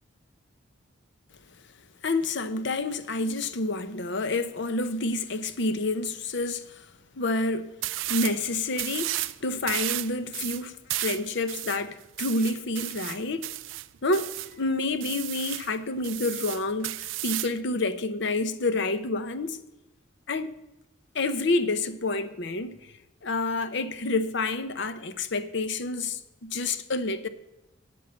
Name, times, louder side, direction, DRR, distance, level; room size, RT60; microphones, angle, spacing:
voice 1, 2.0-6.9 7.2-7.7 8.1-13.5 14.0-19.6 20.3-20.5 21.1-22.9 23.2-27.3, left 2 dB, 60° left, 0.8 m, -29 dB
sound 1, 7.8-8.4 8.7-9.4 9.7-14.5 15.0-15.7 16.0-17.6, right 16 dB, 70° right, 0.4 m, -33 dB
9.4 x 8.3 x 6.9 m
head